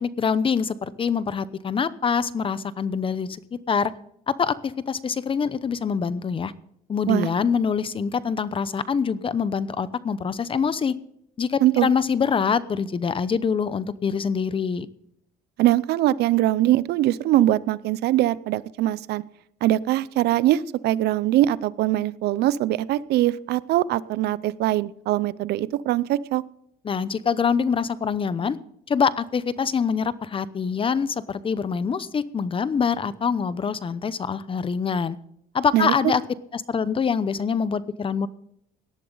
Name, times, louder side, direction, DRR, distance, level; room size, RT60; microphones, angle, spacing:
voice 1, 0.0-3.9 4.3-6.5 6.9-11.0 11.4-14.9 26.8-28.6 28.9-35.2 35.5-36.2 36.5-38.3, left 6 dB, 30° left, 16 dB, 0.8 m, -25 dB
voice 2, 15.6-19.2 19.6-26.4 35.7-35.9, right 14 dB, 75° right, 19 dB, 0.6 m, -22 dB
18.0 x 11.5 x 4.0 m, 0.71 s
cardioid pair, 110°, 17 cm